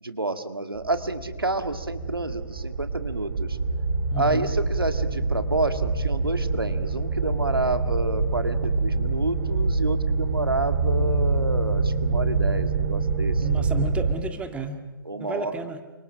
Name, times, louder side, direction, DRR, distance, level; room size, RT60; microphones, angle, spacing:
voice 1, 0.0-3.6 4.1-13.7 15.1-15.5, right 2 dB, 90° right, 9 dB, 2.0 m, -29 dB
sound 1, 0.7-14.1, right 3 dB, 60° right, 3.3 m, -26 dB
voice 2, 4.1-4.5 13.4-14.8 15.2-15.8, right 3 dB, 10° right, 7 dB, 1.8 m, -31 dB
29.5 x 26.5 x 6.4 m, 1.2 s
figure-of-eight pair, 125°, 12 cm